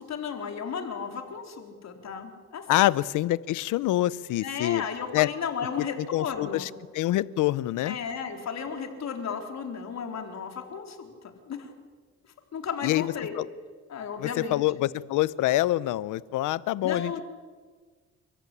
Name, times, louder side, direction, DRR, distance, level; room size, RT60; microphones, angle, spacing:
voice 1, 0.0-2.9 4.4-6.7 7.8-11.1 11.5-11.7 12.5-13.3 13.9-14.6 16.8-17.2, left 6 dB, 60° left, 4 dB, 4.1 m, -34 dB
voice 2, 2.7-4.8 5.1-5.3 5.8-8.0 12.8-13.5 14.2-17.2, left 16 dB, 90° left, 19 dB, 0.8 m, -26 dB
30.0 x 14.0 x 10.0 m, 1.5 s
cardioid pair, 90°, 30 cm